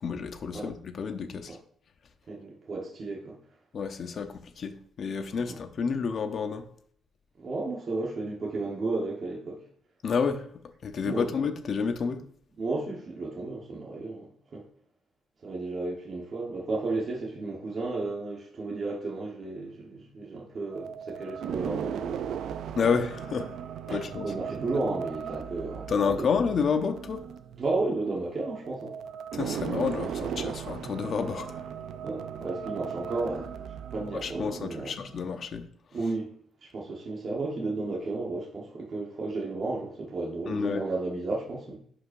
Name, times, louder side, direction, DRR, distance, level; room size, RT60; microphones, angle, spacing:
voice 1, 0.0-1.6 3.7-6.6 10.0-10.4 10.8-12.2 22.8-23.6 23.9-24.3 25.9-27.2 29.3-31.6 34.2-35.6 40.5-40.8, left 6 dB, 45° left, 0.8 m, -29 dB
voice 2, 2.3-3.4 5.5-5.6 7.4-9.6 11.0-11.3 12.6-14.6 15.4-22.4 23.9-26.3 27.6-29.0 32.0-33.5 33.9-34.9 35.9-36.3 36.6-41.8, right 3 dB, 40° right, 1.3 m, -33 dB
sound 1, 20.7-35.4, right 8 dB, 75° right, 0.4 m, -37 dB
11.0 x 5.1 x 2.6 m
cardioid pair, 150°, 0 cm